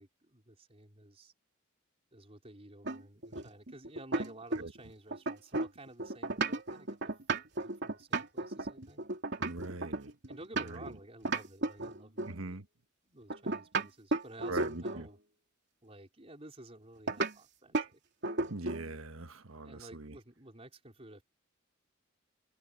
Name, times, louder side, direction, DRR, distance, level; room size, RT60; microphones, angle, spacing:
voice 1, 0.0-1.3 2.1-7.0 7.6-9.0 10.3-12.6 13.0-15.2 15.8-18.0 19.6-21.2, right 2 dB, 30° right, 4.8 m, -52 dB
sound 1, 2.8-4.8 5.1-10.9 11.2-12.4 13.3-15.1 17.1-17.3 17.7-17.9 18.2-18.9, right 2 dB, 55° right, 3.2 m, -34 dB
voice 2, 9.4-10.1 10.6-10.9 12.3-12.6 14.5-15.1 18.5-20.2, right 2 dB, 75° right, 1.3 m, -41 dB
head